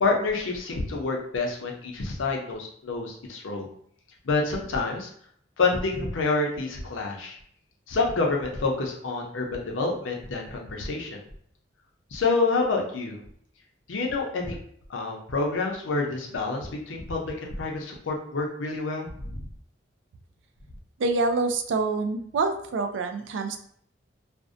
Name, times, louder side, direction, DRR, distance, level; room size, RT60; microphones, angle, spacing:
voice 1, 0.0-3.7 4.2-5.1 5.6-7.4 7.9-11.2 12.1-13.2 13.9-14.6 14.9-19.4, left 3 dB, 90° left, 0 dB, 0.6 m, -28 dB
voice 2, 21.0-23.6, right 3 dB, 80° right, 7 dB, 0.3 m, -26 dB
2.5 x 2.1 x 2.5 m, 0.63 s
head